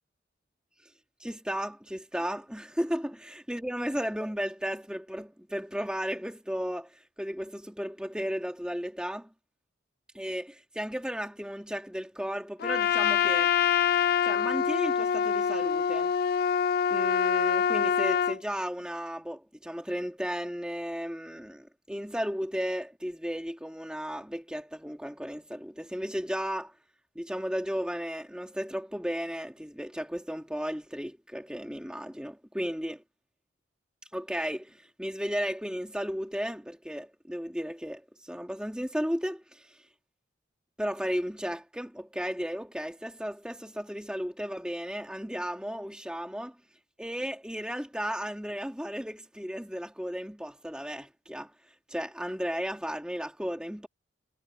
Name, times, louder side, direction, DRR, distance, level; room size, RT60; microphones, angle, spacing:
voice 1, 1.2-9.3 10.1-13.5 14.2-16.1 16.9-26.7 27.2-33.0 34.1-39.9 40.8-46.6 47.0-51.5 51.9-53.9, equal, 5° right, 2.0 m, -34 dB
Trumpet, 12.6-18.4, left 7 dB, 50° left, 0.3 m, -25 dB
head